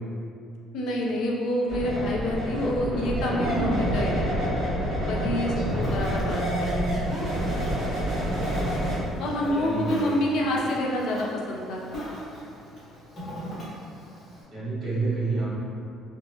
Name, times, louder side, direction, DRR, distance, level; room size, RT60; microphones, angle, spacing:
voice 1, 0.7-4.6 5.0-7.0 9.2-11.8, left 1 dB, 60° left, -2 dB, 0.4 m, -28 dB
sound 1, 1.7-9.0, equal, 50° right, 1.1 m, -27 dB
Ocean, 5.4-14.4, equal, 30° left, 0.8 m, -42 dB
voice 2, 5.4-6.3 9.1-10.1 14.5-15.5, right 3 dB, 25° right, -11 dB, 1.1 m, -30 dB
2.9 x 2.1 x 2.7 m, 2.5 s
cardioid pair, 160°, 0 cm